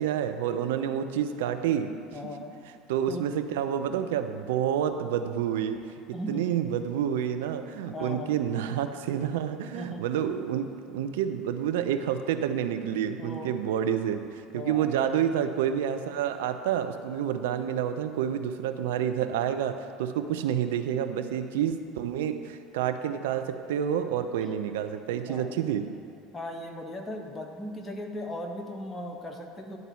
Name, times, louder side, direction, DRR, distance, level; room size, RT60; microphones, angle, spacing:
voice 1, 0.0-1.9 2.9-5.8 6.3-25.8, right 9 dB, 75° right, 8 dB, 0.6 m, -29 dB
voice 2, 2.1-2.5 3.1-3.3 6.1-6.4 7.9-8.3 9.7-10.0 13.2-13.5 14.5-15.0 21.5-21.7 25.3-25.6 26.3-29.8, left 1 dB, 20° left, 2 dB, 1.3 m, -38 dB
11.0 x 4.0 x 7.5 m, 2.7 s
hypercardioid pair, 75°, 0 cm